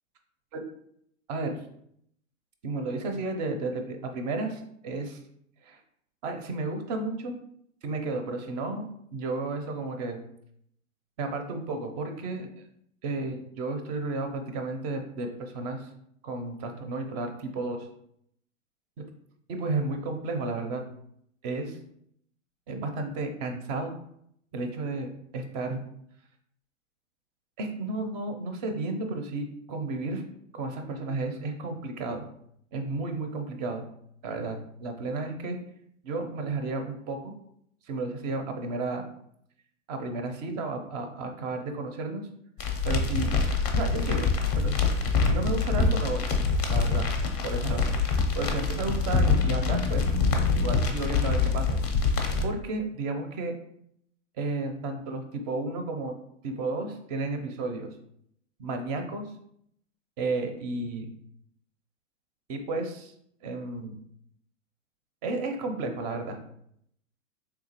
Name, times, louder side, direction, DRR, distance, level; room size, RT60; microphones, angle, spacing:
voice 1, 1.3-1.6 2.6-5.2 5.6-5.8 6.2-7.4 7.8-10.2 11.2-12.5 13.0-15.9 16.2-17.9 19.0-19.1 19.5-20.8 21.4-21.8 22.7-23.9 24.5-25.8 27.6-30.2 30.5-32.3 32.7-33.8 34.2-35.6 36.0-37.3 37.8-39.1 39.9-42.3 42.9-43.3 43.7-44.3 44.5-44.8 45.2-46.3 46.7-47.1 47.4-47.9 48.4-50.0 50.5-51.8 52.4-53.5 54.4-56.2 56.4-57.9 58.6-59.2 60.2-61.1 62.5-63.1 63.4-64.0 65.2-66.4, right 3 dB, 30° right, 6 dB, 0.4 m, -32 dB
sound 1, 42.6-52.4, left 4 dB, 30° left, 0.5 m, -25 dB
3.5 x 2.9 x 2.8 m, 0.71 s
hypercardioid pair, 120°, 41 cm